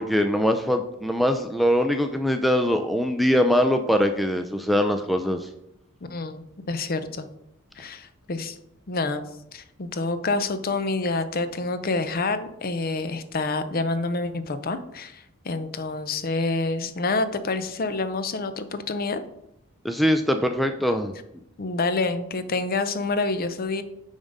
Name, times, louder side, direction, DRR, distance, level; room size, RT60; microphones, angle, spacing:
voice 1, 0.0-5.5 19.8-21.1, equal, ahead, 5 dB, 0.3 m, -22 dB
voice 2, 6.1-7.3 7.8-8.6 8.9-9.3 9.5-19.2 21.6-23.8, left 3 dB, 45° left, 11 dB, 0.6 m, -27 dB
8.7 x 3.6 x 5.2 m, 0.82 s
head